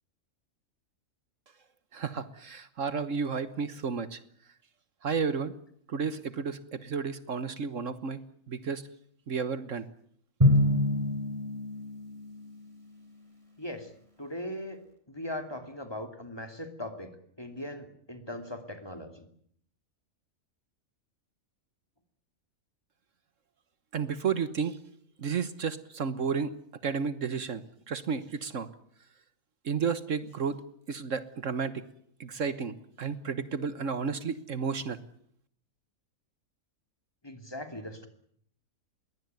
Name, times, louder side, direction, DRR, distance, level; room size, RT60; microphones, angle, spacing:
voice 1, 1.9-4.2 5.0-5.5 5.9-8.2 8.5-8.9 9.3-9.9 23.9-24.8 25.2-26.5 26.8-28.7 29.6-30.6 30.9-31.8 32.2-35.0, right 5 dB, 65° right, 13 dB, 1.6 m, -32 dB
Drum, 10.4-12.6, left 1 dB, 25° right, 3.7 m, -26 dB
voice 2, 13.6-13.9 14.2-14.8 15.1-17.1 17.4-19.3 37.2-38.1, left 1 dB, 20° left, 7 dB, 2.8 m, -39 dB
22.0 x 18.0 x 9.4 m, 0.66 s
omnidirectional pair, 1.4 m